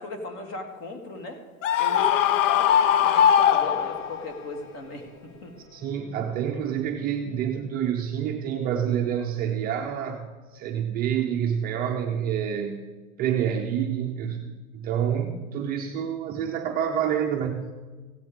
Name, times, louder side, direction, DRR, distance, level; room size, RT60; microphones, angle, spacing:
voice 1, 0.0-1.4 1.8-5.5, left 2 dB, 35° left, 4 dB, 2.2 m, -37 dB
Screaming, 1.6-4.3, left 9 dB, 60° left, 0.7 m, -20 dB
sound 1, 3.5-8.6, right 2 dB, 80° left, 3.9 m, -51 dB
voice 2, 5.7-12.9 13.2-17.7, right 9 dB, 20° right, 1 dB, 0.6 m, -28 dB
16.0 x 12.5 x 3.7 m, 1.3 s
supercardioid pair, 150°, 43 cm